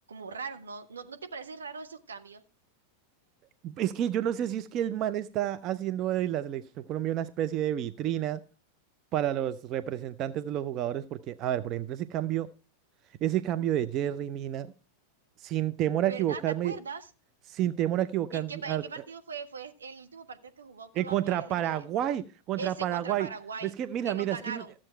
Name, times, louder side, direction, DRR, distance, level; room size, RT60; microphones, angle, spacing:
voice 1, 0.1-2.4 16.0-17.1 18.3-21.7 22.6-23.7 24.0-24.7, right 5 dB, 70° right, 1.1 m, -40 dB
voice 2, 3.6-8.4 9.1-12.5 13.2-14.7 15.4-16.7 17.5-18.8 21.0-23.3 23.6-24.6, right 11 dB, 35° right, 0.5 m, -30 dB
14.0 x 7.5 x 4.4 m
figure-of-eight pair, 90°, 0 cm